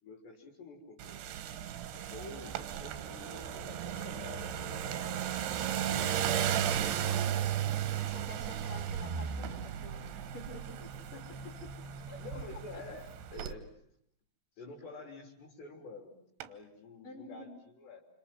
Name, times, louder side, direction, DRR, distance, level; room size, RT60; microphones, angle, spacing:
voice 1, 0.0-1.2 1.9-5.2 5.6-6.8 7.6-8.3 11.1-11.7 12.2-13.7 14.6-16.1 16.5-18.0, left 3 dB, 60° left, 1 dB, 5.1 m, -49 dB
sound 1, 1.0-13.5, right 9 dB, 65° right, 3.0 m, -35 dB
sound 2, 2.5-2.9 3.9-5.0 5.7-5.8 6.2-6.6 9.4-9.8 11.7-12.1 12.4-12.8 13.4-13.7 16.4-16.8, right 12 dB, 90° right, 4.2 m, -46 dB
voice 2, 8.1-10.9 12.1-12.2 12.7-12.8 17.0-17.5, left 2 dB, 25° left, 3 dB, 5.4 m, -48 dB
28.5 x 27.5 x 7.6 m, 0.71 s
omnidirectional pair, 6.0 m